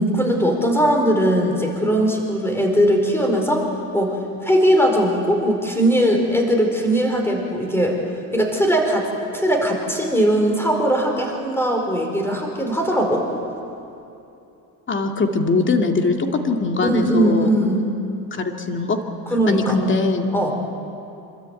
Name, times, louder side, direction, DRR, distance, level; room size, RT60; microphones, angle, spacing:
voice 1, 0.0-3.6 3.9-4.2 4.4-8.0 8.3-9.1 9.3-13.2 16.8-17.9 19.3-19.8 20.3-20.5, equal, 5° left, 2 dB, 4.8 m, -19 dB
voice 2, 14.9-16.2 16.4-17.5 18.4-19.0 19.5-20.3, left 3 dB, 30° left, 4 dB, 2.4 m, -21 dB
26.5 x 13.0 x 9.2 m, 2.7 s
supercardioid pair, 90°, 40 cm